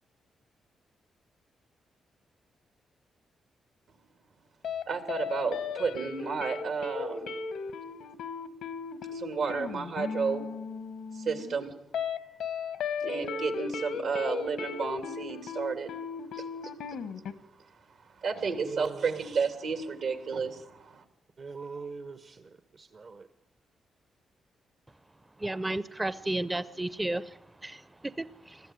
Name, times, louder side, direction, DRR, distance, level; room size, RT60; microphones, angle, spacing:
sound 1, 4.6-4.8 5.1-17.3, left 5 dB, 85° left, 1.2 m, -36 dB
voice 1, 4.9-7.4 9.1-10.4 11.1-11.7 13.0-15.9 16.3-16.7 18.2-21.0, right 5 dB, 75° right, 7 dB, 2.8 m, -32 dB
voice 2, 18.5-19.2 21.4-23.3, right 4 dB, 55° right, 10 dB, 1.1 m, -42 dB
voice 3, 25.4-27.2 27.6-27.8 28.2-28.6, right 1 dB, 15° right, 15 dB, 0.6 m, -32 dB
20.5 x 14.5 x 9.3 m, 0.88 s
cardioid pair, 65°, 0 cm